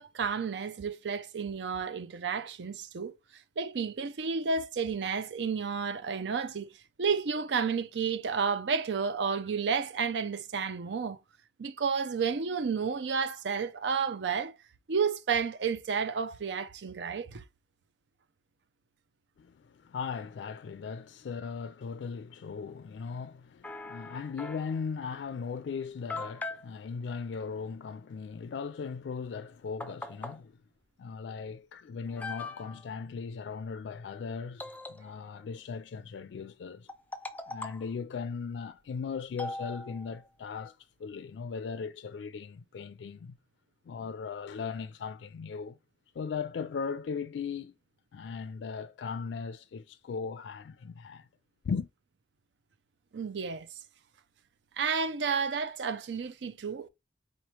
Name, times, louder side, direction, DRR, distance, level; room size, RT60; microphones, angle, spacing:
voice 1, 0.0-3.1 3.6-6.7 7.0-11.2 11.6-14.5 14.9-17.4 53.1-53.7 54.8-56.9, right 5 dB, 80° right, 0.5 m, -31 dB
voice 2, 19.4-30.6 31.0-36.9 37.5-43.4 43.9-45.8 46.1-47.8 48.1-51.3 51.6-51.9, left 5 dB, 80° left, 0.3 m, -38 dB
sound 1, 23.6-24.8 25.6-25.7 26.1-26.7 29.2-29.3 29.8-30.4 31.4-31.5 32.1-32.9 34.6-35.4 36.9-37.9 39.4-40.3, left 2 dB, 10° left, 0.4 m, -41 dB
4.2 x 3.0 x 3.1 m
head